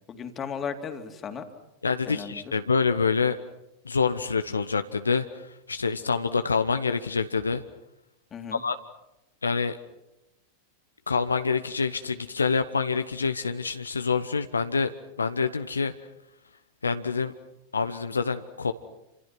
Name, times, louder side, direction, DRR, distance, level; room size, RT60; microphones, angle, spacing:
voice 1, 0.1-1.5 2.1-2.4 8.3-8.6, left 6 dB, 25° left, 6 dB, 2.9 m, -35 dB
voice 2, 1.8-3.4 3.8-5.4 5.7-7.6 8.5-8.8 9.4-9.8 11.1-14.9 15.2-15.9 16.8-17.3 17.7-18.7, left 5 dB, 75° left, 10 dB, 1.0 m, -26 dB
29.0 x 27.0 x 6.1 m, 0.91 s
figure-of-eight pair, 90°, 0 cm